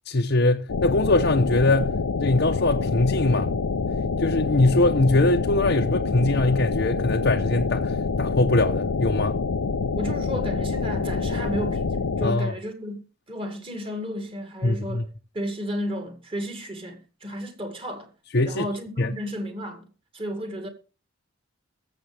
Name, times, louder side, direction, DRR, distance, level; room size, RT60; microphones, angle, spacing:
voice 1, 0.1-1.9 2.2-3.5 4.2-9.4 12.2-12.5 14.6-15.0 18.3-18.7 19.0-19.1, left 2 dB, 50° left, 0.8 m, -22 dB
sound 1, 0.7-12.3, left 4 dB, 80° left, 0.6 m, -26 dB
voice 2, 10.0-15.1 15.3-18.1 18.4-19.9 20.1-20.7, equal, 25° right, 2.1 m, -33 dB
22.0 x 7.6 x 3.4 m
head